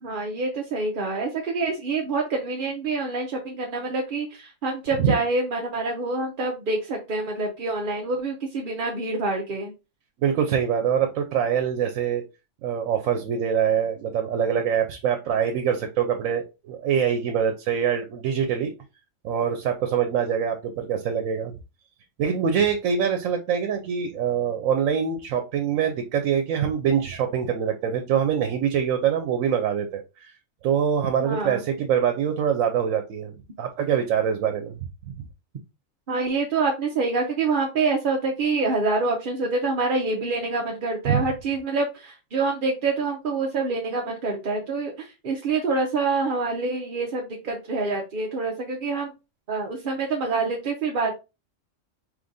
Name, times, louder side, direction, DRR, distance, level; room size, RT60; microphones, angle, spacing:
voice 1, 0.0-9.7 31.2-31.6 36.1-49.1 49.5-51.1, right 3 dB, 50° right, 0 dB, 0.7 m, -26 dB
voice 2, 10.2-12.2 12.6-18.7 19.2-21.6 22.2-30.3 30.6-34.9 41.1-41.3, right 8 dB, 85° right, 6 dB, 1.0 m, -24 dB
5.0 x 3.2 x 2.6 m, 0.27 s
omnidirectional pair, 1.3 m